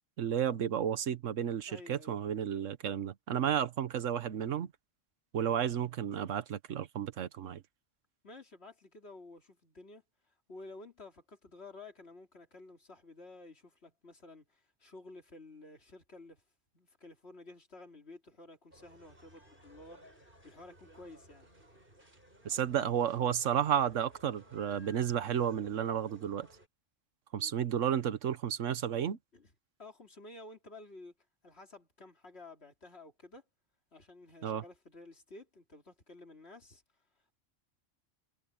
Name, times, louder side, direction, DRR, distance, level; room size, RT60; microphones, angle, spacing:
voice 1, 0.2-4.7 5.3-7.6 22.4-26.5 27.3-29.2 34.4-34.6, right 9 dB, 80° right, 1.2 m, -32 dB
voice 2, 1.7-2.2 8.2-16.4 16.7-21.5 27.3-27.6 29.3-29.5 29.8-31.1 31.4-33.4 33.9-36.8, left 2 dB, 55° left, 3.3 m, -52 dB
sound 1, 18.7-26.7, equal, 45° right, 8.1 m, -59 dB
omnidirectional pair, 1.3 m